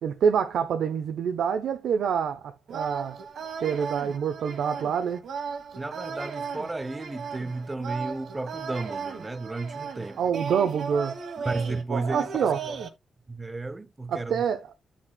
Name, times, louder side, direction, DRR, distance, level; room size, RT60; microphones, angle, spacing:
voice 1, 0.0-3.2 3.6-5.2 10.2-11.1 11.9-12.6 14.1-14.7, right 7 dB, 90° right, 0.8 m, -26 dB
sound 1, 2.7-12.9, right 5 dB, 70° right, 1.5 m, -36 dB
voice 2, 5.7-10.2 11.4-12.8 13.3-14.4, right 3 dB, 20° right, 0.7 m, -33 dB
9.6 x 6.4 x 2.3 m
wide cardioid pair, 135°, 0 cm